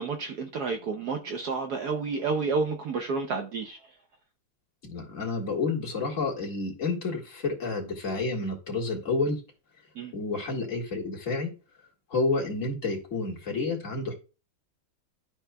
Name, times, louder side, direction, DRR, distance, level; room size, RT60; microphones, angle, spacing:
voice 1, 0.0-3.8 10.0-10.1, right 4 dB, 65° right, 1.0 m, -30 dB
voice 2, 4.8-9.4 10.1-11.5 12.1-14.1, left 3 dB, 40° left, 1.9 m, -30 dB
12.5 x 4.7 x 2.2 m
omnidirectional pair, 2.2 m